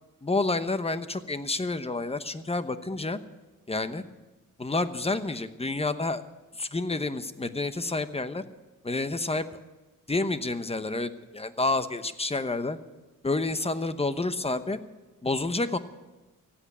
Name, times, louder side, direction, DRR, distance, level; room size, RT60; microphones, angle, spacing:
voice 1, 0.2-3.2 3.7-4.0 4.6-6.2 6.6-8.4 8.8-9.5 10.1-12.8 13.2-14.8 15.2-15.8, left 2 dB, 20° left, 11 dB, 1.0 m, -29 dB
16.0 x 8.6 x 9.7 m, 1.2 s
cardioid pair, 75°, 34 cm